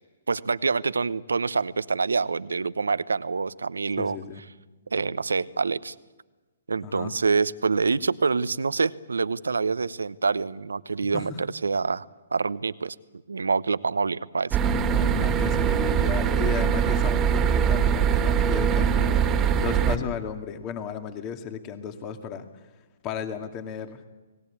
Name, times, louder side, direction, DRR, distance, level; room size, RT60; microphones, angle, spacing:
voice 1, 0.3-4.2 4.9-5.9 6.7-12.0 12.3-13.0 13.3-14.6, right 4 dB, 85° right, 17 dB, 0.9 m, -26 dB
voice 2, 4.0-4.4 6.8-7.1 11.0-11.4 14.9-22.7 23.0-24.0, left 7 dB, 30° left, 6 dB, 2.3 m, -35 dB
sound 1, 14.5-20.0, right 7 dB, 20° right, 2.1 m, -22 dB
29.5 x 19.0 x 8.6 m, 1.3 s
hypercardioid pair, 130°, 0 cm